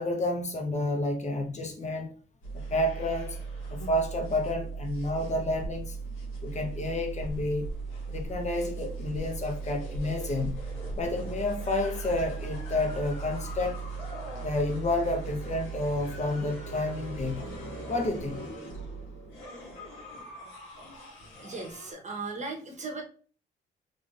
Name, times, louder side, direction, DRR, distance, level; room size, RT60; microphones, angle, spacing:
voice 1, 0.0-2.1 2.7-3.4 3.7-6.0 6.4-7.7 8.1-10.6 11.0-13.8 14.4-17.5 17.9-18.4, left 2 dB, 35° left, 1.0 m, -30 dB
sound 1, 2.4-21.9, right 3 dB, 85° left, 1.6 m, -38 dB
voice 2, 21.4-23.0, right 3 dB, 35° right, 1.1 m, -37 dB
3.5 x 3.5 x 2.5 m
cardioid pair, 90°, 20 cm